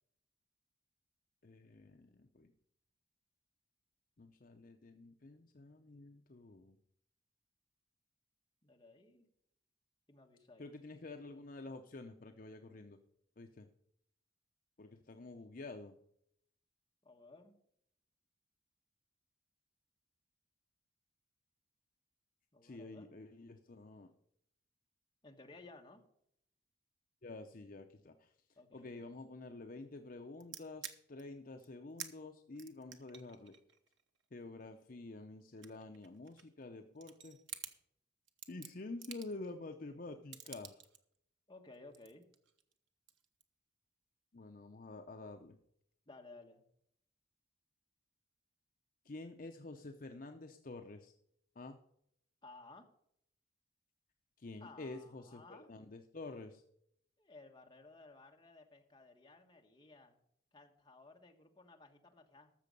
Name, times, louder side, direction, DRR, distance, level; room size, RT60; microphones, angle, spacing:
voice 1, 1.4-2.5 4.2-6.8 10.6-13.0 13.4-13.7 14.8-15.9 22.6-24.1 27.2-28.3 28.7-33.5 34.3-37.4 38.5-40.8 44.3-45.6 49.0-51.1 51.6-51.8 54.4-56.6, left 2 dB, 45° left, 5 dB, 0.6 m, -49 dB
voice 2, 8.6-9.3 10.1-10.6 17.0-17.5 22.5-23.1 25.2-26.0 28.6-29.1 41.5-42.3 46.1-46.6 52.4-52.9 54.6-55.7 57.2-60.2 60.5-62.5, left 3 dB, 20° left, 2 dB, 1.2 m, -57 dB
sound 1, 30.4-31.2 31.6-31.7 32.0-32.1 32.5-34.9 35.4-36.6 36.9-37.8 38.3-39.5 40.3-41.0 41.7-42.7 43.1-43.4, right 8 dB, 70° right, 1.0 m, -50 dB
13.5 x 6.8 x 5.3 m, 0.72 s
head